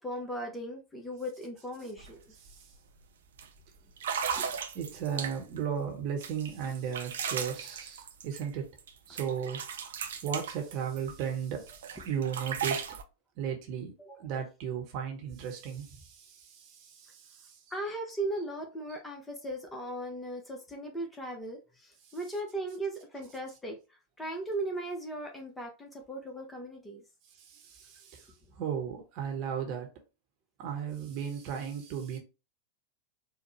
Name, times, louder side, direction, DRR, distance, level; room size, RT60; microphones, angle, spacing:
voice 1, 0.0-2.3 4.3-4.5 14.0-14.2 17.7-23.8 24.2-27.0, right 1 dB, 10° left, 0.9 m, -37 dB
sound 1, 2.0-2.1 2.5-2.8 3.4-3.5 4.0-5.6 6.2-8.9 9.2-11.3 11.7-13.0, right 7 dB, 60° right, 0.5 m, -36 dB
voice 2, 4.7-8.7 9.1-9.7 10.2-12.8 13.4-13.9 14.2-17.5 27.4-28.3 28.5-29.9 30.6-32.2, right 7 dB, 45° right, 1.1 m, -35 dB
4.5 x 2.2 x 3.1 m
figure-of-eight pair, 90°, 0 cm